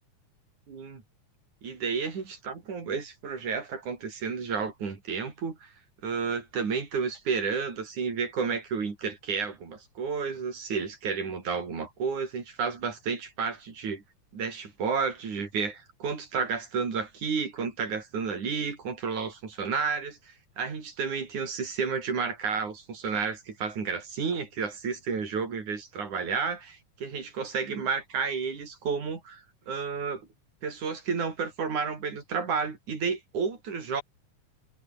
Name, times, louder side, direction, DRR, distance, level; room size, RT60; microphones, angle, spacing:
voice 1, 0.7-1.0 1.6-5.7 6.0-14.0 14.3-30.3 30.6-34.0, right 5 dB, 65° right, 5.6 m, -31 dB
omnidirectional pair, 3.7 m